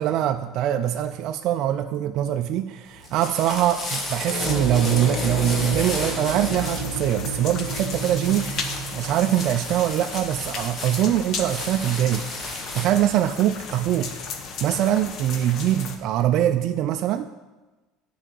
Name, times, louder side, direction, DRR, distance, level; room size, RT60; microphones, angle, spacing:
voice 1, 0.0-12.2 12.5-14.1 14.6-17.3, right 11 dB, 45° right, 7 dB, 0.3 m, -23 dB
sound 1, 2.9-13.1, left 2 dB, 25° left, 1.3 m, -34 dB
sound 2, 4.3-10.1, right 2 dB, 70° left, 2.5 m, -31 dB
sound 3, 6.5-16.0, left 5 dB, 40° left, 0.9 m, -35 dB
10.0 x 4.7 x 7.6 m, 1.2 s
cardioid pair, 160°, 0 cm